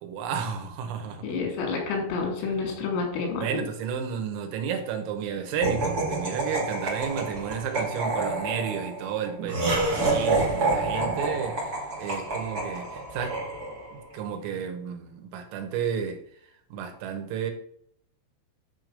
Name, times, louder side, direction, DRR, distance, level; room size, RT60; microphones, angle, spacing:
voice 1, 0.0-1.4 2.5-2.6 3.4-13.4 13.9-16.2 16.7-17.5, right 7 dB, 85° right, 3.9 m, -32 dB
voice 2, 1.2-3.5, left 4 dB, 90° left, 5.4 m, -29 dB
Laughter, 5.6-14.0, right 2 dB, 30° right, 1.7 m, -28 dB
10.0 x 4.7 x 6.7 m
omnidirectional pair, 5.8 m